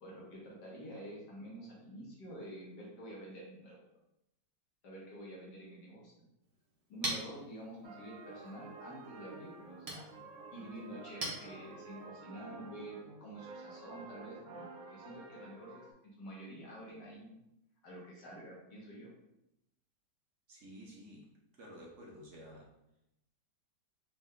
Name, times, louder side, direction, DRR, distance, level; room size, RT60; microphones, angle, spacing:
voice 1, 0.0-3.8 4.8-6.1 6.9-10.0 10.5-14.6 14.9-15.8 16.2-17.4 17.8-19.1, right 1 dB, 70° left, -4 dB, 1.6 m, -48 dB
Chink clink, 6.4-12.1, right 2 dB, 40° right, 0.5 m, -45 dB
sound 1, 7.8-15.9, right 3 dB, 90° right, 0.6 m, -51 dB
voice 2, 20.5-22.7, equal, 55° right, -2 dB, 0.9 m, -52 dB
4.3 x 2.6 x 3.6 m, 0.86 s
omnidirectional pair, 1.9 m